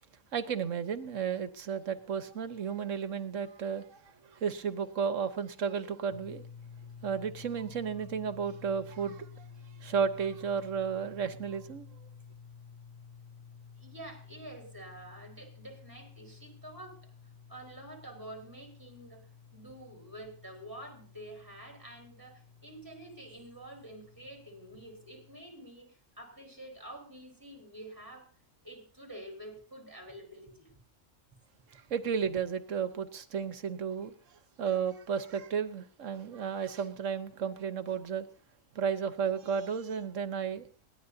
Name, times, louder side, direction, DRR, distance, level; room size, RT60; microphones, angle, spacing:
voice 1, 0.3-4.0 4.3-6.4 7.0-9.5 9.8-11.9 31.7-34.1 34.6-38.3 38.7-40.7, right 6 dB, 70° right, 1.4 m, -33 dB
sound 1, 6.1-25.4, left 6 dB, 10° left, 3.3 m, -52 dB
voice 2, 13.8-17.1 17.5-28.3 28.6-30.7, right 1 dB, 15° right, 4.9 m, -48 dB
22.0 x 17.0 x 2.8 m
omnidirectional pair, 1.4 m